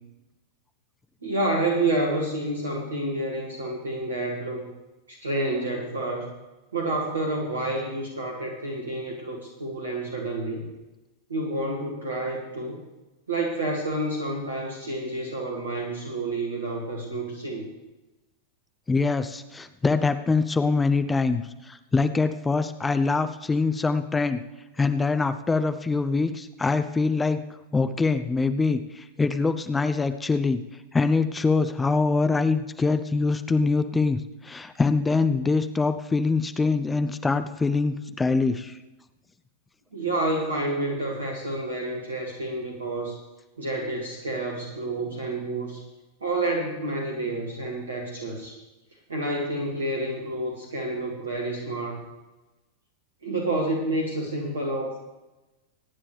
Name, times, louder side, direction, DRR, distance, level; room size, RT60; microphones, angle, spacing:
voice 1, 1.2-4.7 5.1-6.2 6.7-10.7 11.3-12.8 13.3-17.7 39.9-43.2 43.6-45.8 46.2-48.6 49.1-52.1 53.2-55.0, right 2 dB, 70° right, 0 dB, 2.2 m, -29 dB
voice 2, 18.9-24.4 24.8-27.4 27.7-30.6 30.9-38.8, left 4 dB, 10° left, 10 dB, 0.7 m, -24 dB
25.0 x 9.9 x 3.4 m, 1.1 s
figure-of-eight pair, 90°, 0 cm